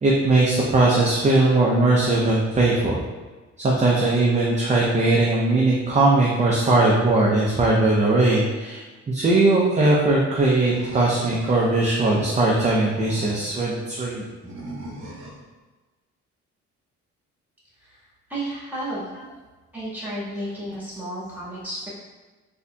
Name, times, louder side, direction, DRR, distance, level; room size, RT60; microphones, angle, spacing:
voice 1, 0.0-3.0 3.6-14.3, right 2 dB, 25° right, -4 dB, 0.5 m, -19 dB
Animal, 10.7-11.8 12.5-13.6 14.4-15.4, right 1 dB, 40° right, 0.9 m, -38 dB
voice 2, 17.8-19.1 19.7-21.9, right 1 dB, 5° right, -7 dB, 1.5 m, -32 dB
3.9 x 2.7 x 2.2 m, 1.3 s
cardioid pair, 90°, 30 cm